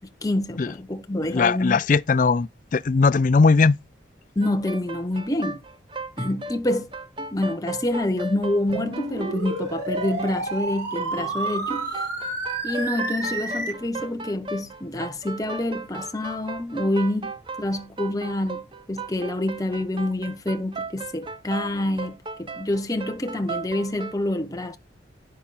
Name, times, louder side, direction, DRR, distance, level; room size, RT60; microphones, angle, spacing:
voice 1, 0.2-1.8 4.4-5.6 6.2-6.9 7.2-11.9 12.6-24.8, left 1 dB, 20° left, 0.8 m, -27 dB
voice 2, 1.2-3.8, left 4 dB, 40° left, 0.4 m, -19 dB
sound 1, 4.4-24.2, right 3 dB, 25° right, 0.8 m, -36 dB
sound 2, 8.7-13.7, right 2 dB, 70° right, 5.7 m, -30 dB
10.0 x 5.6 x 4.0 m
head